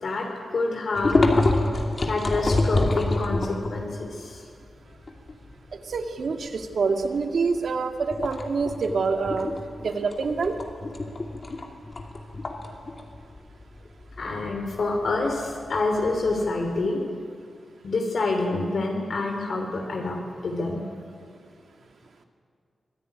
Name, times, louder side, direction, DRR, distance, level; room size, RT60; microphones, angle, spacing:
voice 1, 0.0-1.2 2.0-4.5 14.2-17.0 17.8-20.8, left 3 dB, 55° left, 2 dB, 3.3 m, -27 dB
sound 1, 1.0-3.9 4.4-4.5 4.8-6.0 6.4-6.6 7.0-7.6 8.0-16.8, left 2 dB, 35° left, 2.7 m, -26 dB
voice 2, 5.9-9.5 9.8-10.6, right 4 dB, 60° right, 5 dB, 2.0 m, -26 dB
25.5 x 19.0 x 10.0 m, 2.3 s
wide cardioid pair, 165°, 0 cm